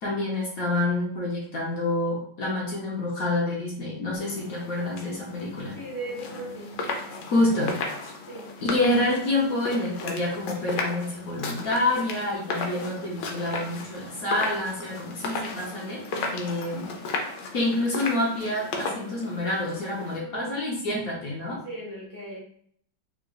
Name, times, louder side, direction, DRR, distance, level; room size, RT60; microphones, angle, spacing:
voice 1, 0.0-5.8 7.3-7.8 8.6-16.0 16.3-16.9 17.5-21.6, left 2 dB, 60° left, -3 dB, 1.1 m, -27 dB
sound 1, 4.2-20.2, left 3 dB, 80° left, 1.3 m, -35 dB
voice 2, 5.7-6.8 8.3-8.5 20.2-20.6 21.6-22.4, right 1 dB, 15° right, -6 dB, 0.9 m, -37 dB
3.7 x 2.9 x 2.3 m, 0.63 s
omnidirectional pair, 1.9 m